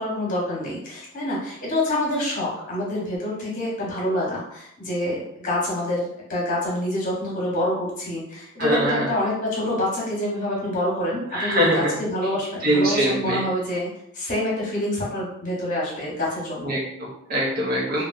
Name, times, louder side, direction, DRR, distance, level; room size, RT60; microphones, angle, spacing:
voice 1, 0.0-13.9 14.1-16.8 18.0-18.1, left 1 dB, 40° left, -4 dB, 1.1 m, -27 dB
voice 2, 8.6-9.1 11.3-11.9 12.6-13.4 16.6-18.0, right 1 dB, 45° right, -3 dB, 0.7 m, -23 dB
3.1 x 2.3 x 2.5 m, 0.75 s
head